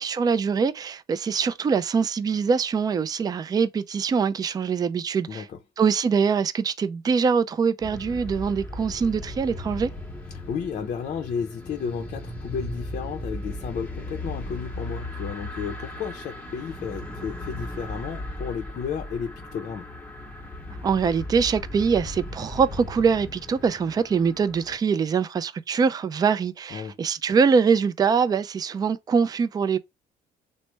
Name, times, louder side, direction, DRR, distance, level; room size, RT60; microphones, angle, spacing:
voice 1, 0.0-5.4 5.8-9.9 20.8-29.8, right 6 dB, 25° right, 0.3 m, -23 dB
voice 2, 5.3-5.6 10.3-19.9 26.7-27.0, left 6 dB, 45° left, 0.5 m, -33 dB
sound 1, 7.8-24.8, left 1 dB, 10° left, 0.9 m, -37 dB
3.2 x 2.0 x 3.1 m
cardioid pair, 110°, 17 cm